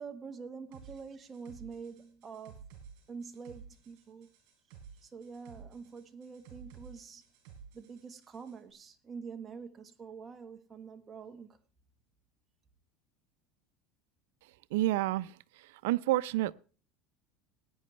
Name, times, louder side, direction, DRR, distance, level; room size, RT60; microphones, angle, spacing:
voice 1, 0.0-2.6 3.1-4.3 5.0-7.2 7.7-11.6, right 5 dB, 20° right, 1.3 m, -46 dB
sound 1, 0.7-8.6, right 6 dB, 60° right, 5.1 m, -54 dB
voice 2, 14.7-15.3 15.8-16.5, right 16 dB, 85° right, 0.5 m, -28 dB
18.0 x 9.5 x 3.2 m
supercardioid pair, 150°, 0 cm